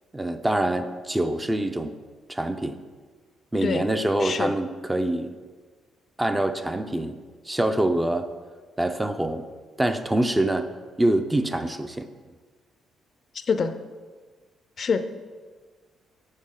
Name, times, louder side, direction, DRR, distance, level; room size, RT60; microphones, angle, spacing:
voice 1, 0.1-1.9 2.3-2.8 3.5-5.3 6.2-7.2 7.5-8.3 8.8-9.5 9.8-10.7 11.0-12.1, right 1 dB, 15° right, 8 dB, 0.5 m, -25 dB
voice 2, 4.2-4.5 13.3-13.7 14.8-15.0, left 5 dB, 45° left, 10 dB, 0.5 m, -25 dB
7.3 x 6.4 x 3.7 m, 1.5 s
cardioid pair, 90°, 0 cm